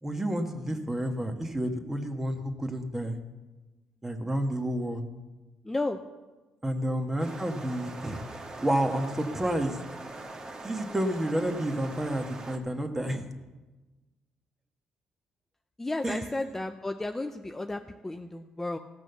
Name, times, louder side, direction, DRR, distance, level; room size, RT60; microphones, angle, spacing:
voice 1, 0.0-3.2 4.0-5.0 6.6-8.2 8.6-9.8 10.6-13.2 16.0-16.5, right 1 dB, 15° right, 5 dB, 1.5 m, -30 dB
voice 2, 5.6-6.0 15.8-18.8, left 2 dB, 15° left, 6 dB, 0.6 m, -33 dB
sound 1, 7.2-12.6, right 2 dB, 35° right, 1.5 m, -42 dB
16.0 x 6.1 x 6.8 m, 1.2 s
cardioid pair, 75°, 2 cm